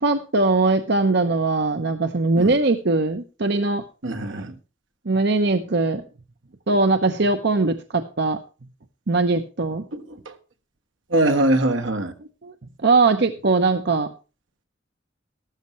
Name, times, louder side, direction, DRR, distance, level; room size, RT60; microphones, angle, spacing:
voice 1, 0.0-3.8 4.1-4.5 5.0-6.0 6.7-8.4 9.1-9.8 12.4-12.5 12.8-14.1, right 3 dB, 60° right, 0.8 m, -21 dB
voice 2, 4.0-4.5 9.9-10.4 11.1-12.1, right 1 dB, 80° right, 1.5 m, -22 dB
14.0 x 13.0 x 3.1 m
head